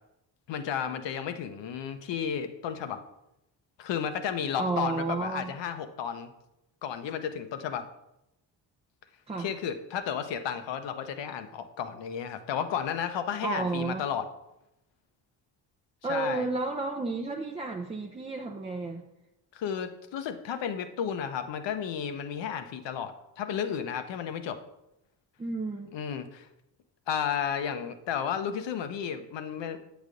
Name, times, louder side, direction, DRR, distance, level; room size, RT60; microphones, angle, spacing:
voice 1, 0.5-3.0 3.8-6.3 6.8-7.9 9.4-14.3 16.1-16.4 19.5-24.6 25.9-26.5 27.1-29.9, left 8 dB, 60° left, 9 dB, 0.7 m, -33 dB
voice 2, 4.6-5.6 9.3-9.5 13.4-14.0 16.0-19.0 25.4-25.9, right 3 dB, 15° right, 1 dB, 0.4 m, -32 dB
8.0 x 5.0 x 2.5 m, 0.88 s
hypercardioid pair, 50°, 49 cm